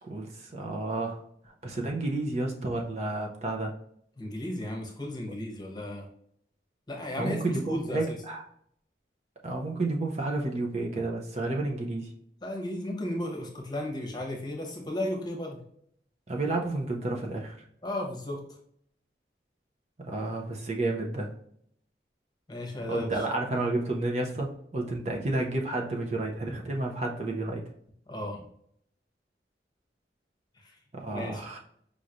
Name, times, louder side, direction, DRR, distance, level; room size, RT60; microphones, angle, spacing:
voice 1, 0.0-3.7 7.2-8.4 9.4-12.1 16.3-17.7 20.0-21.3 22.9-27.6 30.9-31.6, right 2 dB, 40° right, 1 dB, 0.6 m, -31 dB
voice 2, 4.2-6.0 6.9-8.2 12.4-15.6 17.8-18.4 22.5-23.1 28.1-28.4 30.6-30.7 31.1-31.4, left 1 dB, 25° left, 0 dB, 0.9 m, -34 dB
5.1 x 3.1 x 2.5 m, 0.68 s
head